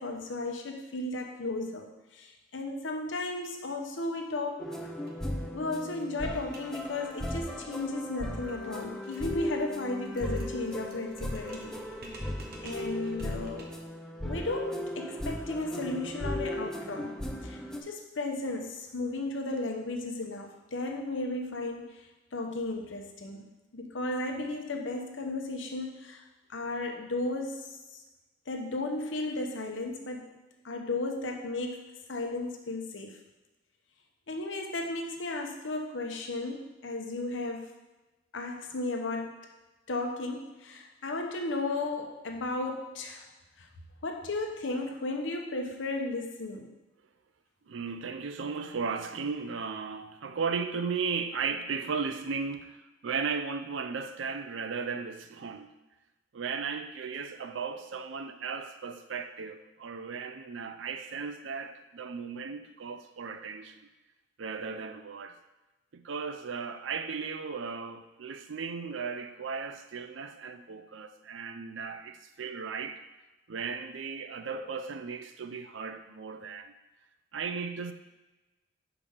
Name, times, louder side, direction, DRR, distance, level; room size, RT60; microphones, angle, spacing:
voice 1, 0.0-4.9 5.5-11.8 12.6-13.8 14.2-17.2 17.4-22.0 22.3-23.5 23.7-26.2 26.5-28.0 28.5-30.4 30.6-33.2 34.3-37.7 38.3-39.4 39.9-43.3 43.6-43.7 44.0-46.7, left 2 dB, 75° left, 0.9 m, -34 dB
sound 1, 4.6-17.8, left 1 dB, 5° left, 0.6 m, -37 dB
sound 2, 5.0-5.1 5.4-5.5 5.8-13.9, right 2 dB, 55° right, 1.0 m, -52 dB
voice 2, 47.7-55.7 56.3-63.8 64.4-65.4 65.9-73.0 73.5-76.7 77.3-77.9, right 5 dB, 75° right, 0.5 m, -36 dB
5.0 x 4.9 x 5.5 m
head